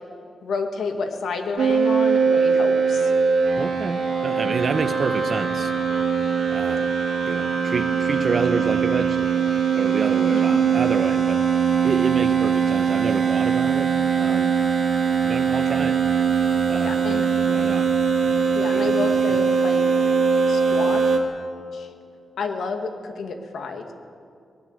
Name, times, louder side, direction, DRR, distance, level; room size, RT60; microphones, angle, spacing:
voice 1, 0.4-3.1 10.3-10.7 16.8-17.3 18.5-19.8 20.5-21.1 21.7-21.9 22.4-23.9, left 4 dB, 80° left, 5 dB, 2.1 m, -30 dB
sound 1, 1.6-21.2, right 6 dB, 75° right, 2.9 m, -21 dB
voice 2, 3.6-5.7 6.5-6.9 7.2-9.5 9.8-11.4 11.8-13.9 14.2-14.5 15.2-16.0 16.7-17.9 18.2-19.4, right 4 dB, 40° right, 10 dB, 1.0 m, -29 dB
24.0 x 19.0 x 8.0 m, 2.5 s
wide cardioid pair, 165°, 0 cm